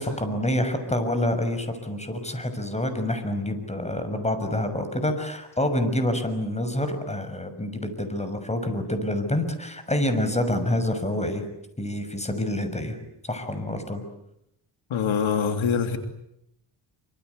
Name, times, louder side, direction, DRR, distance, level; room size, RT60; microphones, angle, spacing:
voice 1, 0.0-11.4 11.8-13.0 13.2-14.0, left 1 dB, 15° left, 9 dB, 6.2 m, -27 dB
voice 2, 14.9-16.0, left 6 dB, 75° left, 6 dB, 3.3 m, -24 dB
27.5 x 26.0 x 8.2 m, 0.80 s
cardioid pair, 95°, 48 cm